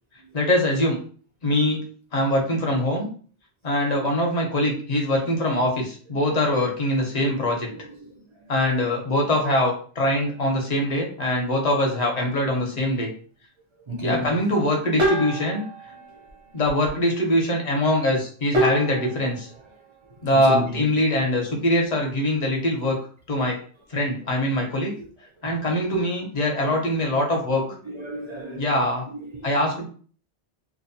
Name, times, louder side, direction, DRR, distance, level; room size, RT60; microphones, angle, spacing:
voice 1, 0.3-1.0 1.4-1.8 2.1-3.1 3.6-7.7 8.5-13.1 14.0-15.6 16.5-19.5 20.2-23.0 23.3-23.6 23.9-24.9 25.4-27.6 28.6-29.0 29.4-29.9, left 1 dB, 45° left, 0.7 m, -23 dB
sound 1, 10.1-11.0 15.0-17.1 18.5-21.9 22.3-22.5 23.4-24.8 25.1-25.5, right 1 dB, 80° right, 1.0 m, -31 dB
voice 2, 13.9-14.3 20.3-20.8 26.6-26.7 27.9-28.9 29.1-29.5, equal, 45° right, 0.4 m, -32 dB
2.6 x 2.1 x 2.6 m
omnidirectional pair, 1.1 m